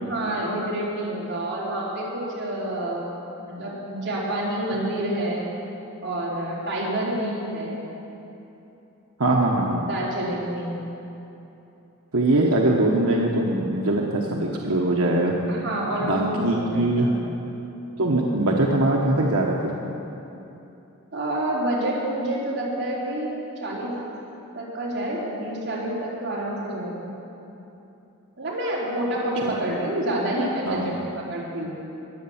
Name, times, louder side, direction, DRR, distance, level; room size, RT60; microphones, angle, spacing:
voice 1, 0.0-3.0 3.5-5.4 6.0-7.9 9.9-10.9 15.5-17.2 21.1-23.3 23.6-23.9 24.5-27.1 28.4-31.7, right 1 dB, 50° right, -7 dB, 4.1 m, -28 dB
voice 2, 9.2-9.9 12.1-15.3 16.0-17.1 18.0-19.6 30.7-30.9, right 2 dB, 90° right, -1 dB, 1.2 m, -22 dB
21.0 x 8.0 x 7.3 m, 2.9 s
head